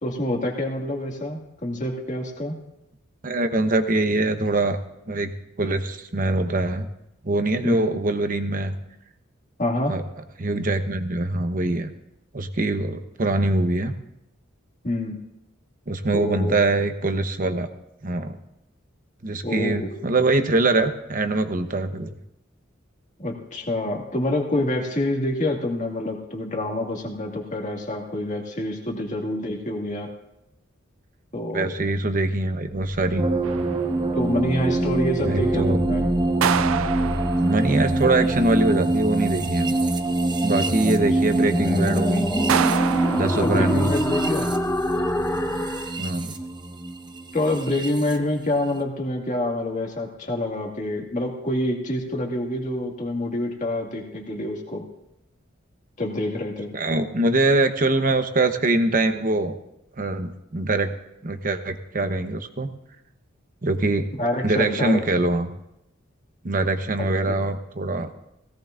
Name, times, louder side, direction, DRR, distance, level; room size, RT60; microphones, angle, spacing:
voice 1, 0.0-2.6 7.6-7.9 9.6-10.0 14.8-15.2 16.1-16.5 19.4-19.9 23.2-30.1 31.3-31.7 34.1-36.0 40.8-40.9 43.4-44.5 47.3-54.9 56.0-56.7 64.2-65.0 67.0-67.4, left 1 dB, 40° left, 1 dB, 2.0 m, -27 dB
voice 2, 3.2-4.8 5.1-5.3 5.6-6.9 7.2-8.7 9.9-10.0 10.4-11.9 12.3-13.9 15.9-17.7 18.0-18.4 19.2-22.1 31.5-33.2 35.2-35.8 37.4-39.8 40.4-42.3 43.1-43.9 46.0-46.3 56.7-59.6 60.0-60.9 61.2-62.7 63.6-64.1 64.4-65.5 66.4-68.1, right 2 dB, 45° right, 7 dB, 1.0 m, -23 dB
sound 1, 32.7-46.0, left 1 dB, 15° left, 0.6 m, -30 dB
sound 2, 33.2-48.2, right 2 dB, 20° right, 0.7 m, -25 dB
sound 3, 33.4-34.3 36.4-37.9 42.5-44.0, right 8 dB, 80° right, 0.4 m, -27 dB
18.0 x 17.0 x 2.5 m, 0.86 s
head